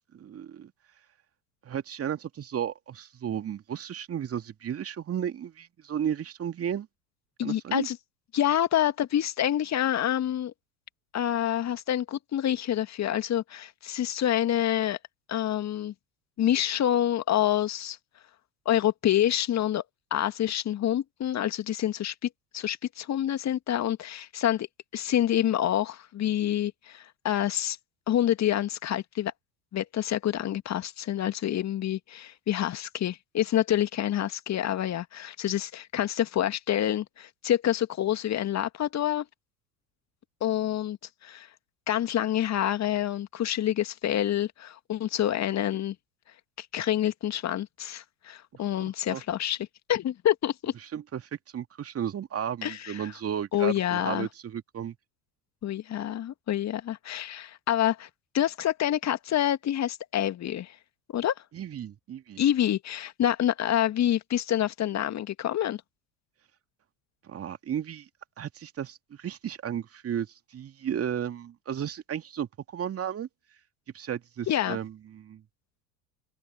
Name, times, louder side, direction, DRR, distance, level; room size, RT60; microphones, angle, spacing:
voice 1, 0.1-0.7 1.6-6.9 7.4-7.9 48.5-49.2 50.9-55.0 61.5-62.4 67.2-68.1 68.4-73.3 73.9-75.4, right 9 dB, 30° right, 2.5 m, -34 dB
voice 2, 7.4-8.0 8.3-10.5 11.1-15.0 15.3-15.9 16.4-18.0 18.7-19.8 20.1-24.7 24.9-27.8 28.1-29.3 29.7-39.3 40.4-41.0 41.2-41.5 41.9-45.9 46.6-50.7 52.6-53.1 53.5-54.3 55.6-58.1 58.3-60.8 61.1-61.4 62.4-65.8 74.5-74.8, left 11 dB, 35° left, 2.4 m, -27 dB
open air
figure-of-eight pair, 70°, 46 cm